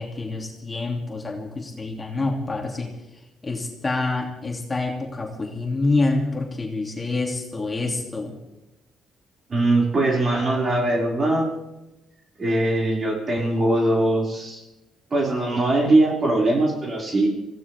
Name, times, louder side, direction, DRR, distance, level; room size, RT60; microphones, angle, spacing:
voice 1, 0.0-2.9 3.4-8.3, left 3 dB, 25° left, 0 dB, 2.9 m, -27 dB
voice 2, 9.5-11.5 12.4-14.6 15.1-17.3, right 2 dB, 40° right, -2 dB, 5.6 m, -21 dB
24.0 x 16.0 x 3.6 m, 0.99 s
cardioid pair, 90°, 0 cm